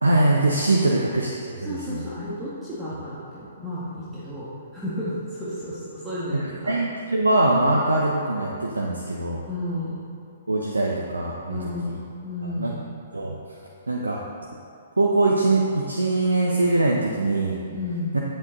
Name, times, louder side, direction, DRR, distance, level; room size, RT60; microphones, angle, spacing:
voice 1, 0.0-2.1 6.3-9.4 10.5-12.0 12.5-12.8 13.1-13.4 13.9-14.2 15.0-17.6 18.1-18.2, right 2 dB, 80° right, -1 dB, 0.8 m, -22 dB
voice 2, 1.7-6.7 9.5-10.0 11.5-12.8 17.7-18.1, left 1 dB, 10° right, -10 dB, 1.9 m, -32 dB
9.7 x 8.0 x 4.0 m, 2.4 s
figure-of-eight pair, 120°, 0 cm